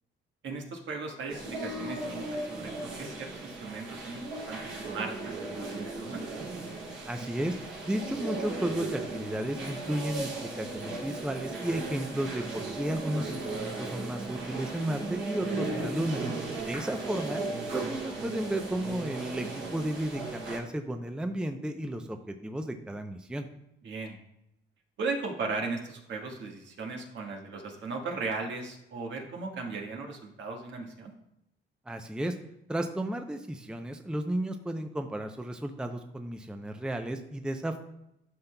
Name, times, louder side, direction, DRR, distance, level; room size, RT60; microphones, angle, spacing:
voice 1, 0.4-6.2 23.8-24.2 25.0-31.1, right 4 dB, 70° right, 1 dB, 1.5 m, -37 dB
sound 1, 1.3-20.6, right 3 dB, 85° right, 2.6 m, -36 dB
voice 2, 7.1-7.6 7.9-16.2 16.7-23.5 31.9-32.3 32.7-37.8, right 1 dB, 5° right, 6 dB, 0.5 m, -33 dB
11.5 x 5.7 x 2.2 m, 0.83 s
cardioid pair, 90°, 20 cm